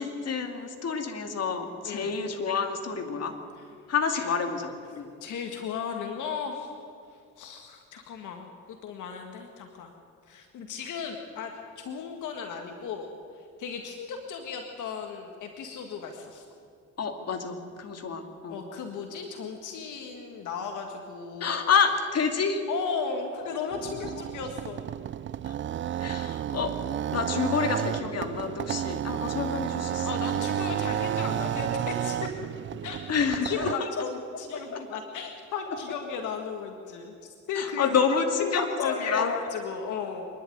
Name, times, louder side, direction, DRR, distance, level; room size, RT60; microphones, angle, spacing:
voice 1, 0.0-3.4 3.9-5.1 17.0-18.6 21.4-22.6 23.7-23.8 25.4-25.5 26.0-26.8 27.1-30.1 33.1-33.9 34.7-34.8 37.6-39.3, left 6 dB, 55° left, 5 dB, 2.5 m, -28 dB
voice 2, 1.9-2.2 3.6-3.7 4.1-4.3 5.0-6.7 7.1-9.9 10.3-16.5 18.5-21.7 22.7-24.9 30.0-32.3 32.8-40.3, left 5 dB, 80° left, 4 dB, 1.9 m, -35 dB
sound 1, 23.7-33.8, right 11 dB, 40° right, 0.4 m, -31 dB
25.0 x 11.0 x 9.4 m, 2.3 s
cardioid pair, 90°, 30 cm